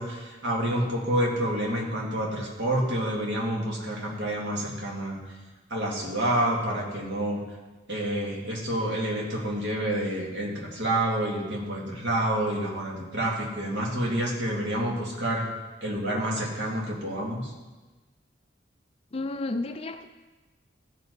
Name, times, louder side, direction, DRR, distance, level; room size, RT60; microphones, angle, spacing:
voice 1, 0.0-5.2 5.7-7.4 7.9-15.4 15.8-17.5, right 1 dB, 60° right, -3 dB, 2.3 m, -28 dB
voice 2, 19.1-20.1, left 2 dB, 30° left, 8 dB, 0.4 m, -31 dB
15.0 x 5.4 x 4.1 m, 1.2 s
head